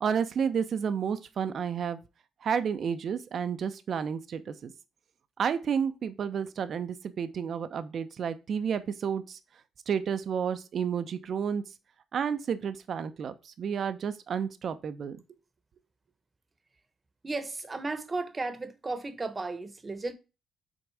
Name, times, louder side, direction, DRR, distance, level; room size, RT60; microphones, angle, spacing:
voice 1, 0.0-2.0 2.4-4.7 5.4-9.4 9.9-11.6 12.1-15.2, right 7 dB, 55° right, 0.8 m, -31 dB
voice 2, 17.2-20.1, right 3 dB, 25° right, 1.1 m, -34 dB
6.4 x 3.9 x 4.8 m
cardioid pair, 90°, 0 cm